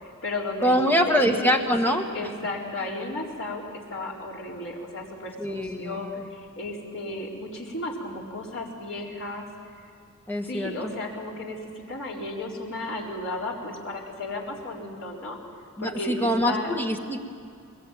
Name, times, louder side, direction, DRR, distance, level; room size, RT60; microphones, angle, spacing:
voice 1, 0.0-0.8 1.1-1.5 1.8-9.5 9.8-9.9 10.4-15.4 15.8-16.7, left 2 dB, 60° left, -2 dB, 4.4 m, -34 dB
voice 2, 0.6-2.0 5.4-6.2 10.3-10.9 15.8-17.2, equal, 10° left, 4 dB, 1.4 m, -24 dB
22.0 x 22.0 x 9.2 m, 2.3 s
head